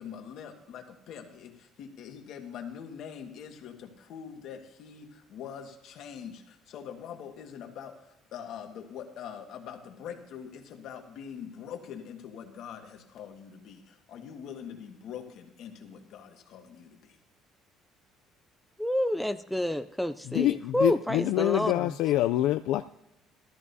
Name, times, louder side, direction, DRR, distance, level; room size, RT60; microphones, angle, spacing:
voice 1, 0.0-17.2, left 8 dB, 60° left, 4 dB, 1.6 m, -43 dB
voice 2, 18.8-21.9, left 1 dB, ahead, 10 dB, 0.3 m, -29 dB
voice 3, 20.3-22.8, left 14 dB, 80° left, 9 dB, 0.3 m, -26 dB
16.5 x 13.5 x 2.7 m, 0.90 s
cardioid pair, 145°, 0 cm